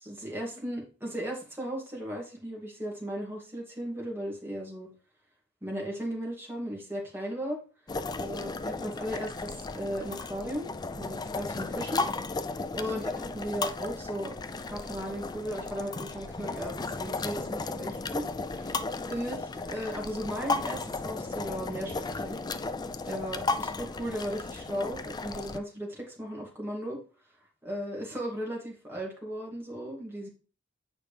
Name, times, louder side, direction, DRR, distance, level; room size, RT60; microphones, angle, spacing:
voice 1, 0.0-4.9 5.6-7.6 8.2-10.7 11.0-12.1 12.7-18.8 19.1-22.4 23.0-27.0 27.6-30.3, equal, 10° right, -2 dB, 2.2 m, -36 dB
sound 1, 7.9-25.6, left 3 dB, 20° left, 0.4 m, -35 dB
8.4 x 5.0 x 3.3 m, 0.36 s
head